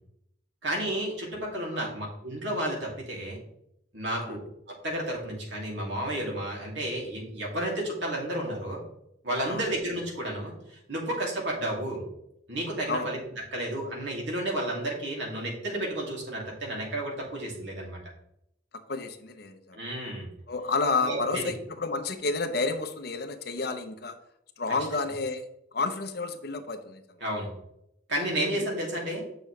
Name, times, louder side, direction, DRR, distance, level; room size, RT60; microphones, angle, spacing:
voice 1, 0.6-3.4 3.9-4.4 4.8-8.8 9.2-12.0 12.5-13.2 13.5-18.0 19.7-20.3 21.0-21.4 27.2-27.5 28.1-29.2, right 1 dB, 70° right, -2 dB, 2.6 m, -32 dB
voice 2, 18.9-19.8 20.5-24.1 24.6-25.5 25.7-27.2 28.5-28.7, left 3 dB, 55° left, 8 dB, 0.7 m, -30 dB
8.0 x 6.4 x 3.2 m, 0.78 s
head